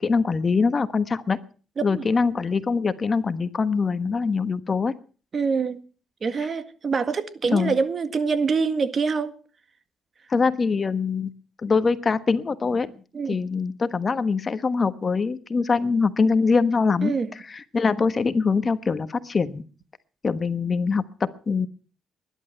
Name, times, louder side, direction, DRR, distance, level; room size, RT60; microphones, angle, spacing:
voice 1, 0.0-1.4 1.8-4.9 7.5-7.7 10.3-11.3 11.6-12.9 13.3-17.1 17.5-19.6 20.2-21.7, left 4 dB, 35° left, 1.2 m, -23 dB
voice 2, 5.3-5.8 6.2-9.3 13.1-13.4 17.0-17.3, right 5 dB, 40° right, 1.7 m, -25 dB
20.5 x 11.0 x 5.8 m
cardioid pair, 90°, 0 cm